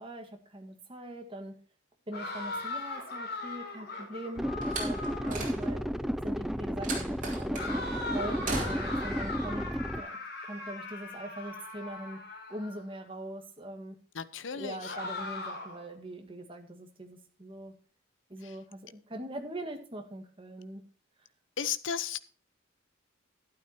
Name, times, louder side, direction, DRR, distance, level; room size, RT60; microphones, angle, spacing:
voice 1, 0.0-1.6 2.1-5.0 5.2-5.8 6.2-7.9 8.1-9.7 9.9-10.2 10.4-12.2 12.5-14.0 14.5-17.7 18.3-20.8, right 1 dB, 25° right, 4 dB, 1.8 m, -42 dB
sound 1, 2.1-5.5 7.5-12.8 14.8-15.9, left 2 dB, 55° left, 4.4 m, -39 dB
sound 2, 4.4-10.0, equal, ahead, 0.4 m, -33 dB
Slam, 4.6-6.0 6.8-7.7 8.4-9.1, right 3 dB, 45° right, 4.3 m, -37 dB
voice 2, 14.1-15.0 18.4-18.6 21.6-22.2, left 7 dB, 80° left, 15 dB, 0.8 m, -35 dB
12.5 x 11.5 x 3.0 m, 0.40 s
head